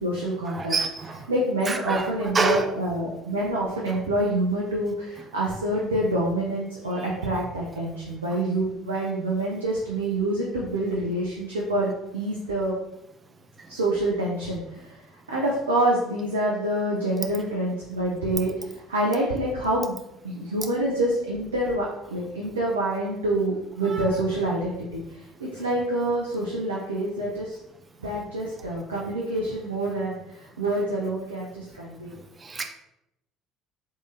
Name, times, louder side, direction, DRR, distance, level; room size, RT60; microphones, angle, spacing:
voice 1, 0.0-0.7 1.3-12.7 13.7-15.0 15.3-20.0 20.2-27.6 28.0-32.1, right 1 dB, 80° right, -4 dB, 0.5 m, -27 dB
voice 2, 0.5-1.3 1.7-2.1 2.3-2.6 23.9-24.1 32.4-32.6, right 3 dB, 30° right, 6 dB, 0.5 m, -27 dB
3.6 x 3.2 x 2.5 m, 0.86 s
figure-of-eight pair, 55°, 0 cm